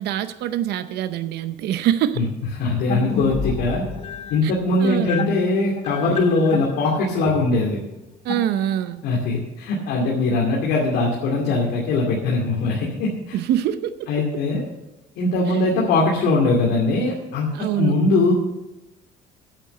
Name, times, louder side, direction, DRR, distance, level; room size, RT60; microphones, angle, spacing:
voice 1, 0.0-2.2 4.4-4.5 4.8-5.2 8.2-9.0 13.3-14.2 15.5-15.6 17.5-18.0, right 11 dB, 75° right, 12 dB, 0.7 m, -24 dB
voice 2, 2.6-3.8 4.3-7.8 9.0-13.4 14.1-14.6 15.2-17.5 17.8-18.3, left 2 dB, 80° left, -3 dB, 2.4 m, -21 dB
sound 1, 2.9-9.1, left 6 dB, 40° left, 1.0 m, -31 dB
8.9 x 8.4 x 7.8 m, 0.97 s
cardioid pair, 110°, 17 cm